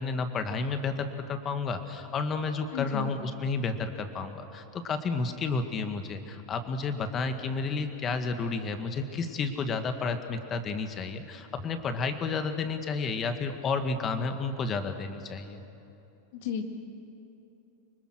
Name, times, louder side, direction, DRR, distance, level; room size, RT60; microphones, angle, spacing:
voice 1, 0.0-15.6, left 4 dB, 30° left, 7 dB, 1.8 m, -31 dB
voice 2, 2.7-3.1 16.3-16.6, left 8 dB, 65° left, 5 dB, 2.0 m, -33 dB
25.0 x 20.5 x 6.4 m, 2.9 s
hypercardioid pair, 115°, 0 cm